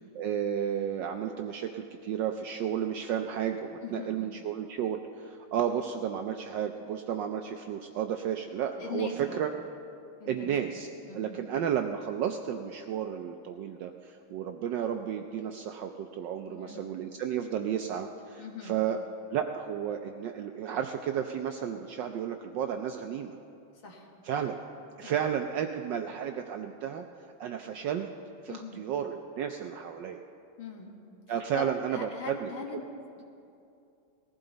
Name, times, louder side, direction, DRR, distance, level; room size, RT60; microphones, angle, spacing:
voice 1, 0.1-9.5 10.3-10.9 11.1-19.0 19.3-23.4 24.2-24.6 25.0-27.0 27.4-28.1 28.4-30.2 31.3-32.5, right 9 dB, 75° right, 5 dB, 1.1 m, -32 dB
voice 2, 3.8-4.2 8.8-9.4 10.2-10.5 11.0-11.5 16.5-16.9 18.4-18.8 23.8-24.1 25.0-25.2 28.5-28.9 30.6-30.9 31.5-32.8 33.2-33.3, left 5 dB, 65° left, 0 dB, 2.3 m, -41 dB
19.5 x 15.0 x 4.0 m, 2.6 s
omnidirectional pair, 2.4 m